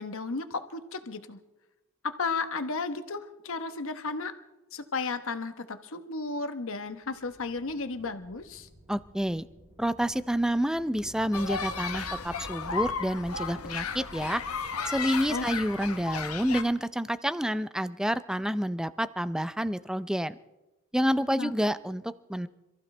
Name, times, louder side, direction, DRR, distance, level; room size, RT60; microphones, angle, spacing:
voice 1, 0.0-1.4 2.0-4.3 4.7-8.7 15.3-15.4 21.4-21.5, left 4 dB, 65° left, 9 dB, 1.1 m, -34 dB
sound 1, 6.7-15.2, right 1 dB, 25° right, 2.6 m, -55 dB
voice 2, 8.9-9.5 9.8-14.4 14.9-20.4 20.9-22.5, equal, 5° right, 13 dB, 0.4 m, -29 dB
sound 2, 11.3-16.6, left 5 dB, 90° left, 1.2 m, -34 dB
27.0 x 14.5 x 3.3 m, 1.0 s
head